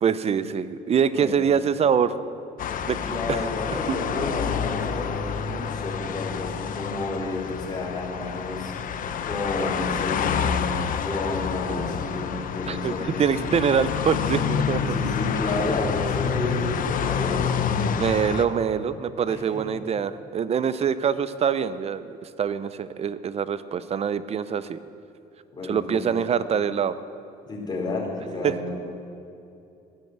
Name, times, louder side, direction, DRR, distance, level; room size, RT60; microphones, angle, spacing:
voice 1, 0.0-2.1 2.8-3.0 3.3-3.4 12.7-14.8 18.0-24.8 25.6-26.9 28.4-28.6, right 7 dB, 40° right, 14 dB, 0.6 m, -24 dB
sound 1, 2.6-18.4, left 7 dB, 55° left, 0.9 m, -28 dB
voice 2, 2.9-13.0 14.8-17.5 19.3-19.6 25.5-26.0 27.4-28.7, left 2 dB, 25° left, -3 dB, 4.4 m, -31 dB
13.0 x 10.5 x 8.0 m, 2.7 s
cardioid pair, 110°, 17 cm